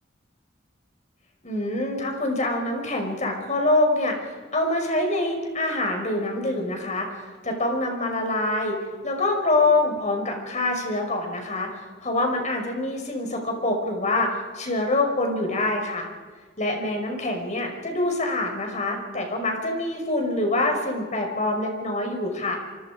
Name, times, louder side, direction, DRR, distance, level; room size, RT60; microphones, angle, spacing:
voice 1, 1.4-4.1 4.5-7.1 7.4-8.8 9.0-14.3 14.5-16.1 16.6-22.6, left 2 dB, 40° left, 3 dB, 5.5 m, -25 dB
27.5 x 24.5 x 5.1 m, 1.4 s
head